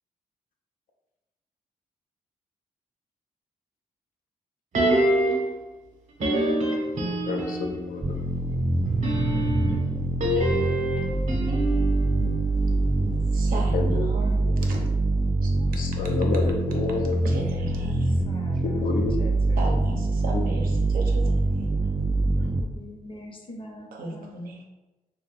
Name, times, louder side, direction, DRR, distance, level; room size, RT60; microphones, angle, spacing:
sound 1, 4.7-5.6 6.2-7.8 8.9-13.1 13.4-13.5, right 1 dB, 55° right, 0.8 m, -26 dB
voice 1, 7.2-8.2 13.7-14.1 14.4-14.6 15.8-17.2 18.6-19.2 20.3-20.4, left 4 dB, 70° left, 2 dB, 0.6 m, -29 dB
sound 2, 8.0-22.6, right 2 dB, 20° right, 0.3 m, -24 dB
voice 2, 13.2-14.8 15.4-16.1 17.2-18.1 19.6-21.3 23.9-24.7, right 2 dB, 80° right, 1 dB, 0.7 m, -36 dB
voice 3, 18.2-20.0 20.4-21.4 22.4-24.4, left 1 dB, 35° left, 1 dB, 0.8 m, -44 dB
2.7 x 2.3 x 3.9 m, 1.1 s
cardioid pair, 65°, 15 cm